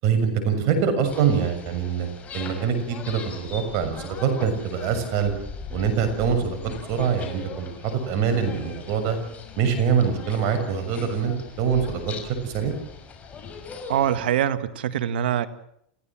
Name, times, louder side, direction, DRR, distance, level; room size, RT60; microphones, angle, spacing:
voice 1, 0.0-2.1 2.3-5.3 5.7-9.2 9.6-12.2 12.4-12.8, right 7 dB, 50° right, 7 dB, 6.9 m, -24 dB
sound 1, 1.0-14.3, left 5 dB, 25° left, 6.0 m, -40 dB
voice 2, 13.9-15.5, right 10 dB, 80° right, 13 dB, 1.8 m, -24 dB
29.0 x 16.5 x 7.6 m, 0.72 s
hypercardioid pair, 120°, 5 cm